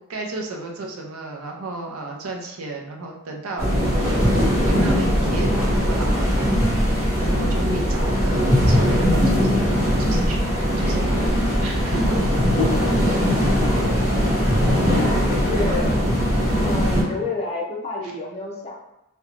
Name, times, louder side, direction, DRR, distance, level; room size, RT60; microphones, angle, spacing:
voice 1, 0.1-3.7 4.6-6.4 7.2-9.7 10.0-10.5 10.8-11.1 11.6-12.2 14.9-15.0, right 2 dB, 90° right, 1 dB, 0.5 m, -32 dB
sound 1, 3.6-17.0, equal, 10° right, 1.4 m, -20 dB
voice 2, 7.1-7.4 15.0-16.0 16.6-18.8, left 3 dB, 30° left, -3 dB, 0.5 m, -30 dB
2.8 x 2.2 x 2.4 m, 0.86 s
head